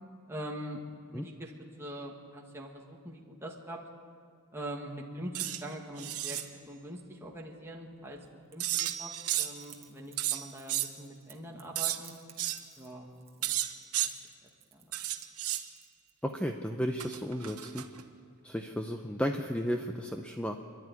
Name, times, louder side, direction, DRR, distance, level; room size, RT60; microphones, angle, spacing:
voice 1, 0.3-0.8 1.1-1.5 1.8-3.8 4.5-6.4 6.7-8.2 8.5-9.1 9.4-12.1 12.8-13.1 13.4-13.6 14.7-14.9, right 1 dB, 10° right, -1 dB, 1.9 m, -43 dB
sound 1, 5.3-5.6 6.0-6.5 8.6-9.6 10.2-10.9 11.8-12.0 12.4-12.6 13.4-14.1 14.9-15.7 17.0-18.0, right 13 dB, 80° right, 1.1 m, -32 dB
Crackle / Crack, 8.1-16.3, right 9 dB, 25° right, 1.6 m, -55 dB
voice 2, 16.2-17.9 18.4-20.6, equal, 5° left, 4 dB, 0.7 m, -33 dB
26.5 x 11.5 x 9.8 m, 2.3 s
head